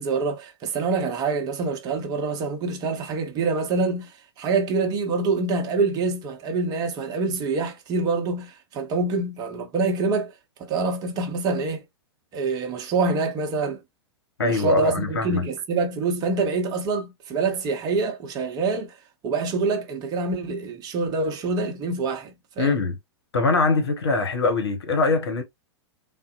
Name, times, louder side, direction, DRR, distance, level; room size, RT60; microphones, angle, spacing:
voice 1, 0.0-10.3 10.6-11.8 12.3-13.8 14.4-19.0 19.2-22.8, right 3 dB, 25° right, 0.7 m, -26 dB
voice 2, 14.4-15.4 22.6-23.0 23.3-25.4, left 3 dB, 70° left, 0.9 m, -22 dB
3.6 x 2.0 x 2.5 m
figure-of-eight pair, 100°, 14 cm